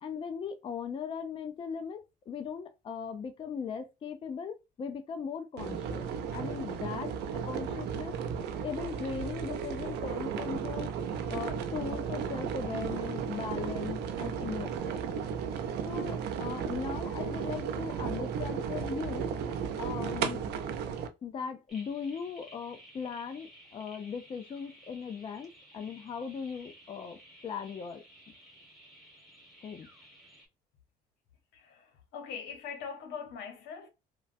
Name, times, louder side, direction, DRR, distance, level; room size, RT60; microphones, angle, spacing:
voice 1, 0.0-8.2 8.6-11.0 11.3-15.1 15.9-19.3 19.8-20.4 21.2-28.0 29.6-29.9, left 6 dB, 30° left, 0.4 m, -39 dB
sound 1, 5.6-21.1, right 7 dB, 85° right, 0.5 m, -34 dB
sound 2, 21.7-30.5, equal, ahead, 1.4 m, -55 dB
voice 2, 31.5-33.9, left 6 dB, 80° left, 1.0 m, -42 dB
3.1 x 2.2 x 2.5 m
cardioid pair, 110°, 17 cm